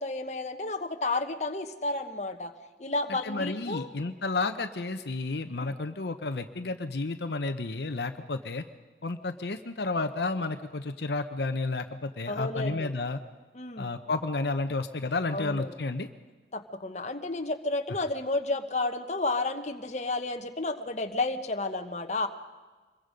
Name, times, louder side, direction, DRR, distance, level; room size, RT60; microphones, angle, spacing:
voice 1, 0.0-2.5 2.8-3.9 5.6-5.7 12.3-12.9 13.5-13.9 15.3-15.7 16.5-22.3, left 2 dB, 40° left, 6 dB, 1.2 m, -31 dB
voice 2, 3.2-8.6 9.0-13.2 13.8-16.1, left 3 dB, 75° left, 8 dB, 0.9 m, -31 dB
26.0 x 22.0 x 5.2 m, 1.3 s
head